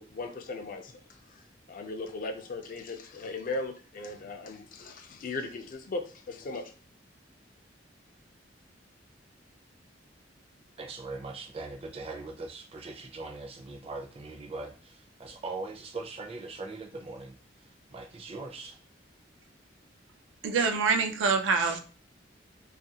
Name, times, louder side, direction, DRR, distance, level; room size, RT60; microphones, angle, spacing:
voice 1, 0.0-1.4 1.7-6.7, left 2 dB, 45° left, 6 dB, 0.4 m, -38 dB
voice 2, 10.8-18.8, right 3 dB, 30° right, 3 dB, 0.4 m, -41 dB
voice 3, 20.4-21.8, right 5 dB, 90° right, 6 dB, 0.4 m, -25 dB
2.4 x 2.2 x 2.7 m, 0.38 s
head